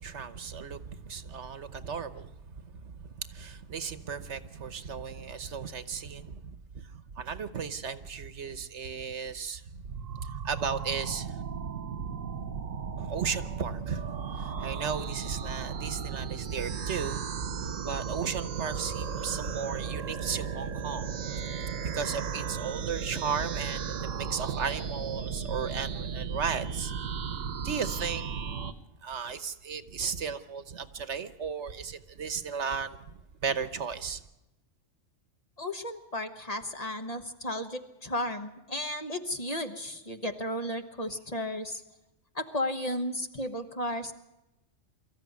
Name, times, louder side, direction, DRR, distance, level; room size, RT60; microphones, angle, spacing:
voice 1, 0.0-2.3 2.6-6.9 7.2-9.8 10.1-11.3 13.0-26.9 27.3-28.2 28.5-28.6 29.0-33.1 33.4-34.2, right 6 dB, 65° right, 1.3 m, -35 dB
sound 1, 9.9-28.7, right 6 dB, 80° right, 1.4 m, -35 dB
voice 2, 35.6-41.8 42.3-44.1, left 1 dB, 30° left, 1.2 m, -34 dB
24.0 x 14.0 x 9.5 m
omnidirectional pair, 1.3 m